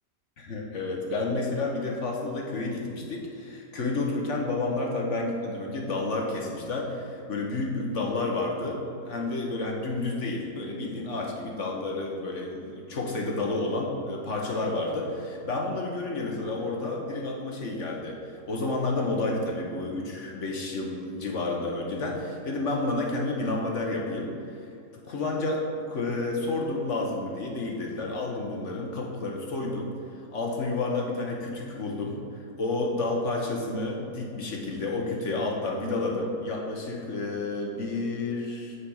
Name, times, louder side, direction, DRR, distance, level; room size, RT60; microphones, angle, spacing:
voice 1, 0.4-18.2 18.5-24.3 25.1-29.9 30.3-38.8, left 2 dB, 50° left, -1 dB, 1.4 m, -30 dB
8.9 x 4.8 x 6.5 m, 2.6 s
omnidirectional pair, 1.8 m